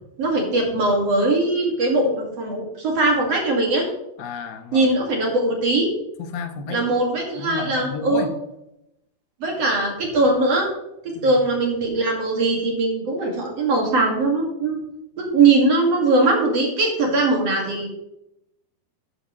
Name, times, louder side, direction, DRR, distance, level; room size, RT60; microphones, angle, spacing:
voice 1, 0.2-3.9 4.7-5.9 6.7-8.3 9.4-10.7 11.0-14.8 15.2-18.0, right 2 dB, 50° right, 0 dB, 2.6 m, -20 dB
voice 2, 4.2-4.9 6.2-6.8 7.4-8.4 11.2-11.4, left 6 dB, 85° left, 6 dB, 3.0 m, -32 dB
13.0 x 9.9 x 3.1 m, 0.83 s
omnidirectional pair, 4.4 m